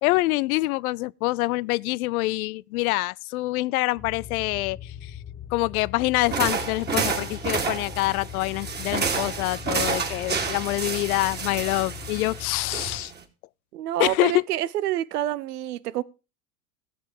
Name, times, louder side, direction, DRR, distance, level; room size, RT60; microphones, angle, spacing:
voice 1, 0.0-5.1 5.5-13.1 14.0-14.4, left 20 dB, 65° left, 0.5 m, -26 dB
sound 1, 4.0-13.0, left 9 dB, 20° left, 1.0 m, -40 dB
sound 2, 6.2-13.2, right 5 dB, 20° right, 2.4 m, -30 dB
voice 2, 13.7-16.0, right 13 dB, 75° right, 0.8 m, -27 dB
15.5 x 7.4 x 4.8 m
hypercardioid pair, 90°, 47 cm